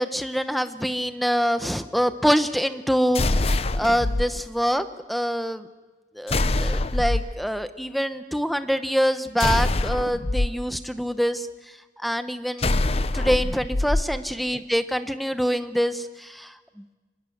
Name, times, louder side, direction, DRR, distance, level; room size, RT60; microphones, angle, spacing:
voice 1, 0.0-5.7 6.1-11.5 12.0-12.8 13.1-16.9, equal, ahead, 10 dB, 0.9 m, -25 dB
sound 1, 3.1-4.3 6.3-7.3 9.4-10.5 12.6-14.1, left 2 dB, 35° left, 0.7 m, -23 dB
25.0 x 20.5 x 7.9 m, 1.3 s
head